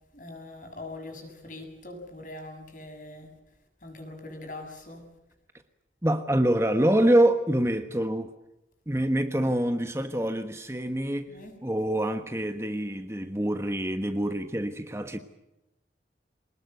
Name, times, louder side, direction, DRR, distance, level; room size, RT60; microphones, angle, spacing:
voice 1, 0.1-3.3 3.8-5.0 11.3-11.6, left 2 dB, 45° left, 6.9 m, -42 dB
voice 2, 6.0-8.3 8.9-11.3 11.6-15.2, right 1 dB, 15° right, 1.3 m, -25 dB
26.0 x 20.0 x 8.0 m
head